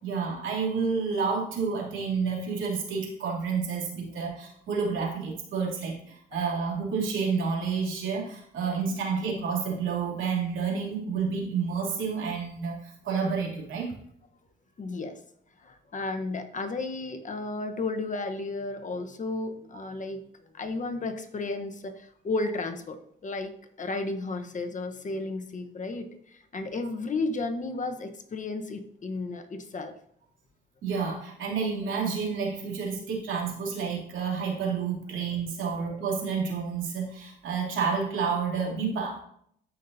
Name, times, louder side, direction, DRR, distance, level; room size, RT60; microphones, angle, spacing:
voice 1, 0.0-13.9 30.8-39.2, right 5 dB, 75° right, -2 dB, 2.9 m, -30 dB
voice 2, 14.8-15.2 15.6-20.2 20.5-29.9, left 3 dB, 40° left, 6 dB, 1.0 m, -33 dB
13.0 x 5.7 x 2.7 m, 0.67 s
cardioid pair, 90°, 20 cm